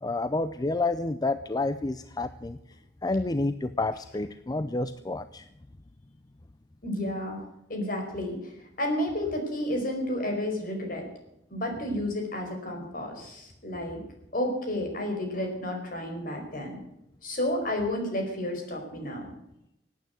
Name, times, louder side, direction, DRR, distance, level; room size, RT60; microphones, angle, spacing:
voice 1, 0.0-2.6 3.0-5.5, left 2 dB, 20° left, 12 dB, 0.5 m, -29 dB
voice 2, 6.8-7.4 7.7-8.5 8.8-11.1 11.5-14.0 14.3-16.8 17.2-19.3, left 1 dB, 50° left, 2 dB, 4.9 m, -31 dB
18.0 x 9.3 x 8.0 m, 0.82 s
head